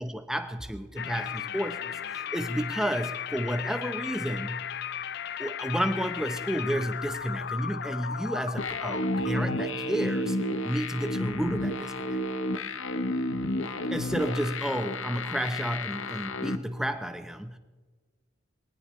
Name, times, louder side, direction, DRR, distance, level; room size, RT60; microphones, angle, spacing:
voice 1, 0.0-4.6 5.4-10.4 10.6-12.2 13.9-17.6, equal, 5° right, 8 dB, 0.9 m, -31 dB
sound 1, 1.0-9.7, left 8 dB, 55° left, 0.4 m, -36 dB
sound 2, 8.6-16.6, left 1 dB, 85° left, 1.0 m, -31 dB
22.0 x 18.5 x 3.2 m, 1.4 s
head